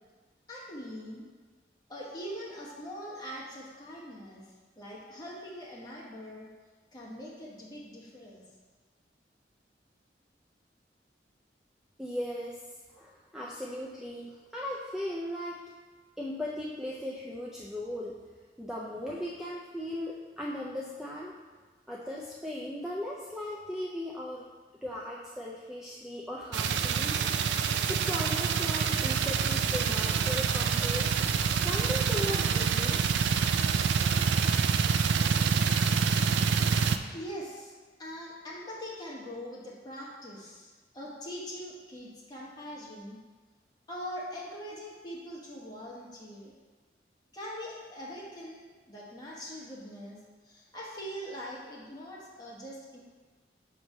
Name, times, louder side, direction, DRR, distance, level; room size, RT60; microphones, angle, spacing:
voice 1, 0.5-1.3 1.9-6.5 6.9-8.4 35.7-35.8 37.1-43.2 43.9-46.5 47.3-50.2 50.4-53.0, equal, 25° left, -5 dB, 1.2 m, -42 dB
voice 2, 12.0-12.6 12.9-15.6 16.2-18.2 18.6-21.4 21.9-24.5 24.8-27.2 27.9-31.1 31.6-33.2, left 1 dB, 5° right, -4 dB, 0.4 m, -37 dB
sound 1, 26.5-37.0, right 6 dB, 85° right, 0.3 m, -26 dB
6.0 x 3.1 x 5.4 m, 1.4 s
head